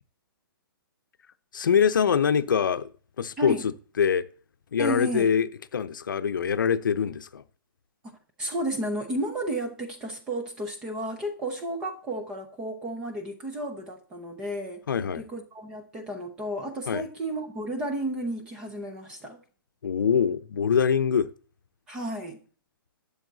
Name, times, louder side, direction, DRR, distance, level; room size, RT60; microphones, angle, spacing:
voice 1, 1.5-2.9 3.2-4.2 4.7-5.5 5.7-7.4 14.9-15.2 16.9-17.0 19.8-21.3, left 7 dB, 60° left, 0.8 m, -24 dB
voice 2, 3.4-3.7 4.8-5.3 8.0-14.8 15.1-19.4 21.9-22.4, right 1 dB, 5° right, 0.6 m, -32 dB
12.0 x 7.2 x 4.0 m
hypercardioid pair, 180°, 12 cm